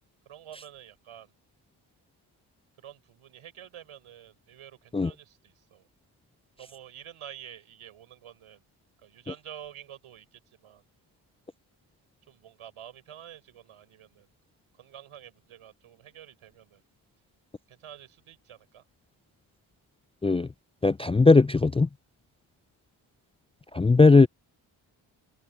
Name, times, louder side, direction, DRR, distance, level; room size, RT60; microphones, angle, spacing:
voice 1, 0.3-1.3 2.8-5.9 6.6-8.6 9.0-10.8 12.3-14.3 14.7-16.8 17.7-18.8, right 10 dB, 80° right, 7.2 m, -48 dB
voice 2, 20.8-21.9 23.7-24.3, left 3 dB, 15° left, 0.4 m, -18 dB
supercardioid pair, 45°, 49 cm